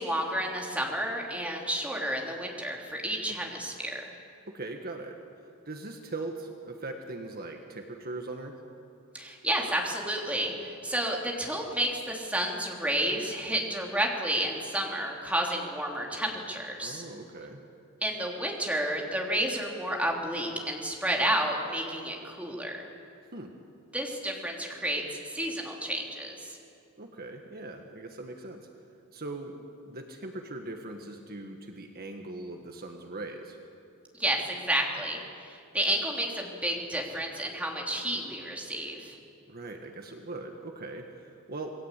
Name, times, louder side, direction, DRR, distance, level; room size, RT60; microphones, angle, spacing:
voice 1, 0.0-3.7 4.0-4.1 9.1-17.0 18.0-22.9 23.9-26.6 34.1-39.2, right 1 dB, 5° right, -1 dB, 3.4 m, -31 dB
voice 2, 4.5-5.2 5.7-8.5 16.8-17.6 23.3-23.5 27.0-28.7 29.1-29.6 29.9-33.6 39.5-41.7, right 2 dB, 45° right, 3 dB, 1.8 m, -40 dB
27.5 x 21.0 x 8.4 m, 2.5 s
head